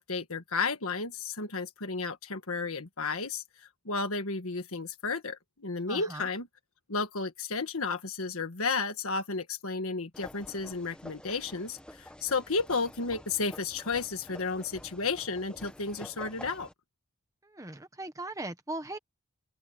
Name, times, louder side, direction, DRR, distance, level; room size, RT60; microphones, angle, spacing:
voice 1, 0.0-6.5 6.9-16.7, left 4 dB, 75° left, 1.6 m, -33 dB
voice 2, 5.9-6.3 17.4-19.0, right 2 dB, 15° right, 1.2 m, -39 dB
sound 1, 10.1-16.7, left 1 dB, 5° left, 0.9 m, -49 dB
open air
head